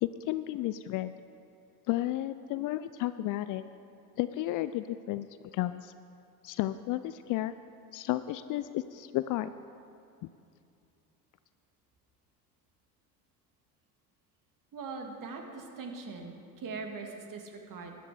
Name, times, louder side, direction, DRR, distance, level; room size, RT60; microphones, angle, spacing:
voice 1, 0.0-1.1 1.9-3.6 4.2-5.3 5.5-5.9 6.4-7.5 7.9-9.5 10.2-10.3, left 15 dB, 45° left, 13 dB, 0.4 m, -32 dB
voice 2, 14.7-18.0, right 4 dB, 40° right, 3 dB, 2.1 m, -41 dB
13.0 x 11.0 x 4.9 m, 2.5 s
hypercardioid pair, 70°, 47 cm